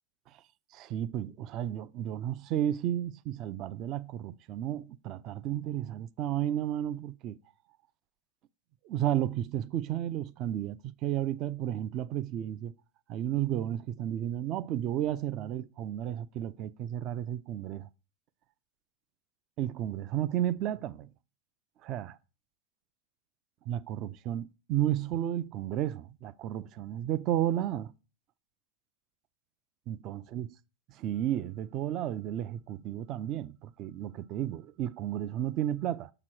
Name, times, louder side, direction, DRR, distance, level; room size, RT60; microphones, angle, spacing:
voice 1, 0.7-7.4 8.8-12.7 13.1-17.9 19.6-21.1 21.8-22.2 23.7-27.9 29.9-30.5 30.9-36.1, right 11 dB, 35° right, 0.4 m, -33 dB
7.6 x 2.9 x 6.1 m
supercardioid pair, 150°, 0 cm